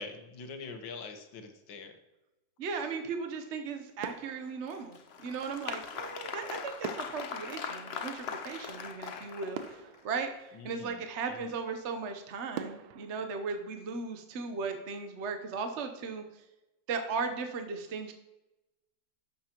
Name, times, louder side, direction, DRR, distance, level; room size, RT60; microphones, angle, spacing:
voice 1, 0.0-2.0 10.5-11.5, left 4 dB, 80° left, 6 dB, 1.9 m, -44 dB
voice 2, 2.6-5.0 5.2-9.6 10.0-16.2 16.9-18.1, right 5 dB, 50° right, 6 dB, 0.9 m, -37 dB
sound 1, 3.3-3.7 4.0-5.5 6.8-8.7 9.2-9.3 9.5-11.1 11.7-11.8 12.5-14.4 14.8-15.0, right 8 dB, 80° right, 1.4 m, -45 dB
Applause, 4.7-10.0, left 6 dB, 60° left, 0.6 m, -40 dB
11.5 x 7.7 x 2.9 m, 1.0 s
omnidirectional pair, 2.0 m